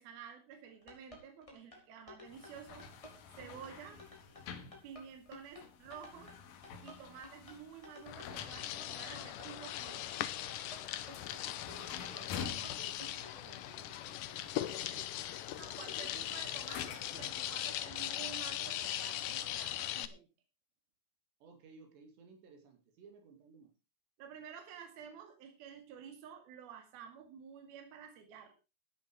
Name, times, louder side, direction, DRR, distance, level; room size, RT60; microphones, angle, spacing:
voice 1, 0.0-2.9 3.4-4.0 4.8-6.4 6.8-10.1 15.6-20.3 24.2-28.5, right 8 dB, 65° right, 5 dB, 3.9 m, -51 dB
sound 1, 0.6-13.4, left 2 dB, 5° left, 4.9 m, -54 dB
sound 2, 2.3-17.3, left 7 dB, 65° left, 3.2 m, -50 dB
sound 3, 8.1-20.1, left 13 dB, 80° left, 1.8 m, -40 dB
voice 2, 11.6-15.1 21.4-23.7, right 5 dB, 85° right, 5 dB, 5.0 m, -58 dB
13.5 x 10.0 x 4.8 m, 0.29 s
omnidirectional pair, 4.9 m